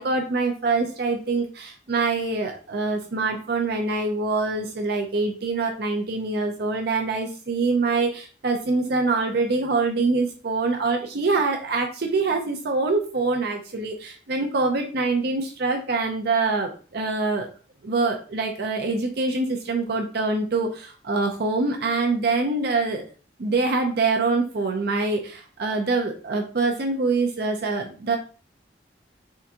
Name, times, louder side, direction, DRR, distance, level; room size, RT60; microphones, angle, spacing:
voice 1, 0.0-17.5 17.8-23.0 23.4-28.2, right 3 dB, 60° right, 3 dB, 0.6 m, -25 dB
3.7 x 3.4 x 2.8 m, 0.38 s
head